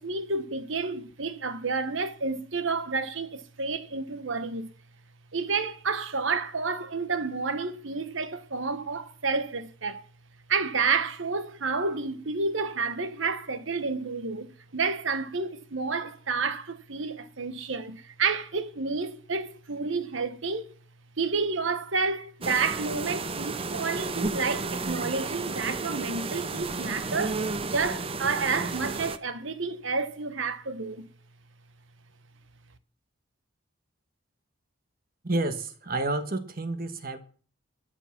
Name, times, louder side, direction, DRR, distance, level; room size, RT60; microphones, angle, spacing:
voice 1, 0.0-4.7 5.3-10.0 10.5-20.7 21.2-31.1, right 4 dB, 70° right, 1.2 m, -30 dB
sound 1, 22.4-29.2, right 3 dB, 25° right, 0.6 m, -32 dB
voice 2, 35.2-37.2, right 2 dB, 45° right, 1.3 m, -30 dB
13.0 x 10.0 x 5.9 m
head